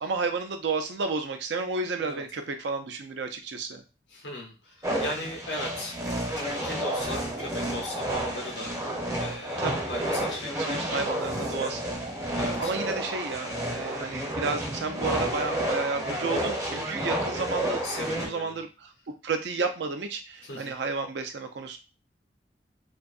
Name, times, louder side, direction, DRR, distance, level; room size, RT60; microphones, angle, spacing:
voice 1, 0.0-3.8 9.6-9.9 10.6-21.8, right 4 dB, 75° right, 7 dB, 0.5 m, -32 dB
voice 2, 4.1-8.7 9.2-11.1 12.3-12.7 16.9-17.1 17.8-18.6 20.4-20.7, left 1 dB, 70° left, 0 dB, 0.7 m, -38 dB
sound 1, 4.8-18.3, right 1 dB, 20° right, 0.6 m, -31 dB
2.6 x 2.3 x 2.4 m, 0.30 s
head